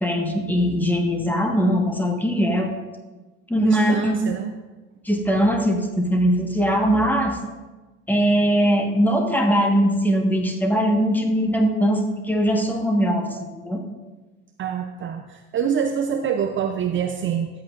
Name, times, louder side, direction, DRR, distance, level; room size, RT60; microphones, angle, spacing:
voice 1, 0.0-2.8 3.5-4.2 5.0-7.4 8.1-13.8, equal, 5° left, 2 dB, 1.4 m, -21 dB
voice 2, 3.6-4.5 14.6-17.5, right 8 dB, 30° right, 6 dB, 0.6 m, -26 dB
13.5 x 8.6 x 2.5 m, 1.2 s
hypercardioid pair, 70°, 37 cm